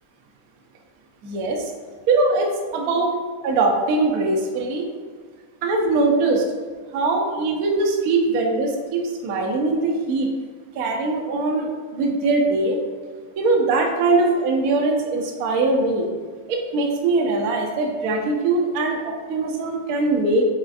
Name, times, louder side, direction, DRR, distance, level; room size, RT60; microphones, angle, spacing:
voice 1, 1.2-1.7 2.1-3.1 3.4-4.9 5.6-6.4 6.9-10.3 10.7-12.8 13.4-16.1 16.5-20.5, right 3 dB, 75° right, 1 dB, 0.8 m, -21 dB
6.0 x 2.4 x 2.4 m, 1.6 s
omnidirectional pair, 2.2 m